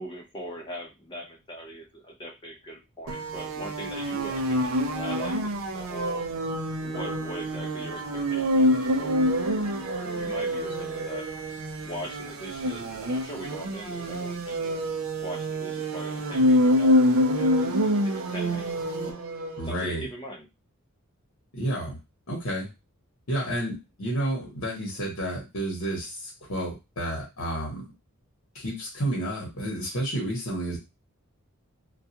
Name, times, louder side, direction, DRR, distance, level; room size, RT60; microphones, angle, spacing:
voice 1, 0.0-6.2 6.8-11.3 11.8-14.8 15.2-18.8 19.0-19.2 19.7-20.5, equal, 20° left, 0 dB, 0.7 m, -41 dB
sound 1, 3.1-19.7, equal, 65° right, 0.4 m, -26 dB
voice 2, 19.6-20.1 21.5-22.0 22.3-22.7 23.3-27.9 28.5-30.8, right 1 dB, 70° left, -1 dB, 1.0 m, -30 dB
2.3 x 2.3 x 2.7 m, 0.24 s
head